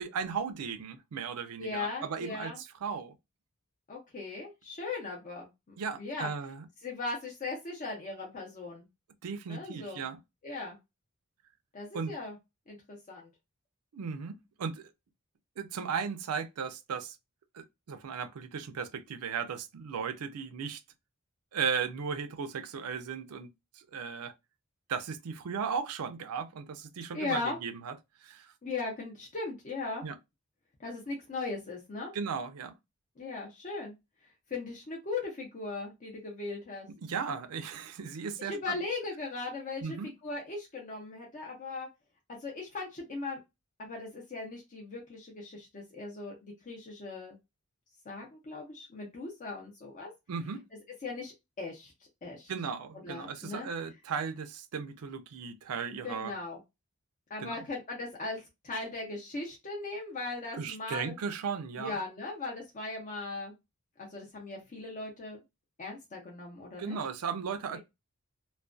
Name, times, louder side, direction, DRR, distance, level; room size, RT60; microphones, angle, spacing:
voice 1, 0.0-3.1 5.8-6.7 9.2-10.2 11.9-12.1 13.9-14.9 15.6-17.2 17.5-20.8 21.5-23.5 23.9-24.3 24.9-27.9 28.2-28.5 30.0-30.2 32.1-32.7 37.0-38.8 39.8-40.1 50.3-50.6 52.5-56.3 57.4-57.5 60.5-62.0 66.8-67.8, right 6 dB, 85° right, 0.4 m, -36 dB
voice 2, 1.6-2.6 3.9-6.3 6.8-8.9 9.5-10.1 10.4-10.8 11.7-12.4 12.7-13.3 27.1-27.6 28.6-30.0 30.8-32.1 33.2-33.9 34.5-36.9 38.4-41.9 42.3-43.4 43.8-47.4 48.1-50.1 51.0-51.9 52.2-52.5 52.9-53.7 56.0-56.6 57.3-61.2 61.8-63.5 64.0-65.4 65.8-67.0 67.7-67.8, left 3 dB, 35° left, 0.6 m, -38 dB
2.3 x 2.2 x 2.4 m
head